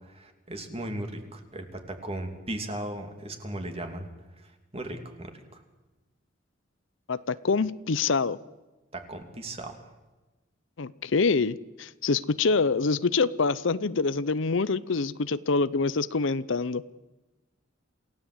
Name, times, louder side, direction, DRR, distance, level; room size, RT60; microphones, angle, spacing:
voice 1, 0.5-4.1 4.7-5.3 8.9-9.8, right 1 dB, 30° right, 5 dB, 2.8 m, -36 dB
voice 2, 7.1-8.4 10.8-16.8, left 4 dB, 65° left, 17 dB, 0.7 m, -26 dB
28.0 x 16.5 x 8.0 m, 1.1 s
head